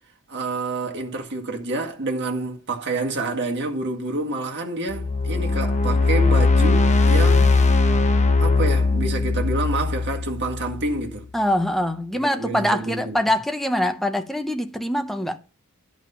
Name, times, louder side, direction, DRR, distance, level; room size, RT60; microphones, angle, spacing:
voice 1, 0.3-7.6 8.4-11.3 12.1-13.2, right 2 dB, 50° right, 1.8 m, -28 dB
sound 1, 4.9-11.1, left 3 dB, 30° left, 1.1 m, -19 dB
voice 2, 11.3-15.4, left 1 dB, ahead, 0.8 m, -23 dB
11.0 x 5.2 x 5.6 m
head